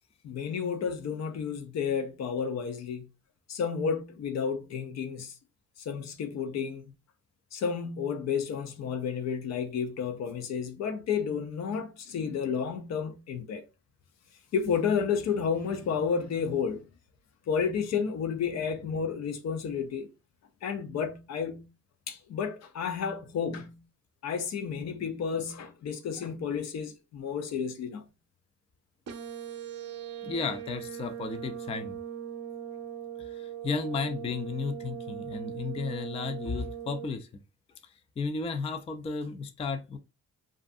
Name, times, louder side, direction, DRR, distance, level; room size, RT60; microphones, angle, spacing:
voice 1, 0.2-3.0 3.5-5.3 5.8-6.8 7.5-13.7 14.5-16.8 17.5-20.1 20.6-21.7 22.1-23.8 24.2-28.0, left 6 dB, 60° left, 0.6 m, -31 dB
sound 1, 29.1-37.1, right 9 dB, 55° right, 0.7 m, -40 dB
voice 2, 30.2-32.0 33.2-37.3 37.8-40.0, left 4 dB, 20° left, 0.3 m, -34 dB
2.4 x 2.4 x 2.4 m
cardioid pair, 90°, 30 cm